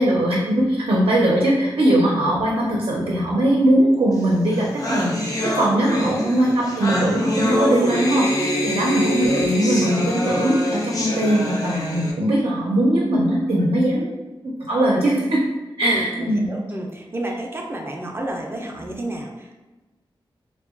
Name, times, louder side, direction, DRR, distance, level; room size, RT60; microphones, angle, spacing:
voice 1, 0.0-14.1 14.7-15.4 15.8-16.5, right 1 dB, 85° right, -4 dB, 0.5 m, -20 dB
sound 1, 4.2-4.3 4.5-12.1, left 1 dB, 40° left, 0.4 m, -25 dB
voice 2, 5.9-6.6 8.6-8.9 15.8-19.5, right 1 dB, 25° right, 0 dB, 0.4 m, -30 dB
2.7 x 2.2 x 2.4 m, 1.1 s
wide cardioid pair, 95°, 9 cm